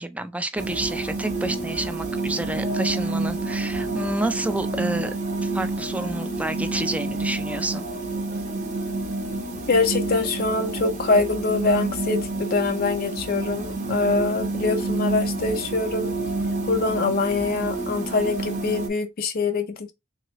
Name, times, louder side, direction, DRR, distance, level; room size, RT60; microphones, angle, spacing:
voice 1, 0.0-5.1 5.4-7.9, right 2 dB, 5° right, 0.4 m, -29 dB
sound 1, 0.6-18.9, right 2 dB, 40° right, 1.1 m, -28 dB
voice 2, 9.7-16.1 16.7-19.9, left 3 dB, 45° left, 0.5 m, -24 dB
3.7 x 3.1 x 2.9 m
head